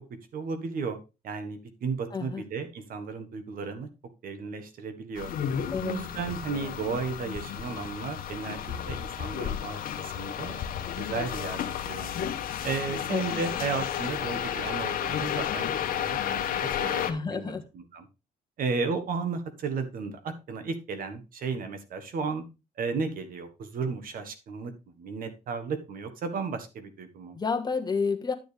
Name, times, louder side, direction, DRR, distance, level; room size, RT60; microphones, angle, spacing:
voice 1, 0.3-1.0 1.2-3.9 4.2-5.3 5.8-10.7 11.0-11.6 11.9-12.1 12.6-18.0 18.6-22.4 22.8-27.4, right 5 dB, 60° right, 1.6 m, -34 dB
voice 2, 2.1-2.4 5.7-6.0 13.1-13.2 17.0-17.6 27.3-28.3, left 5 dB, 25° left, 1.5 m, -29 dB
sound 1, 5.2-17.1, left 9 dB, 60° left, 1.2 m, -32 dB
11.0 x 7.0 x 3.4 m
cardioid pair, 105°, 17 cm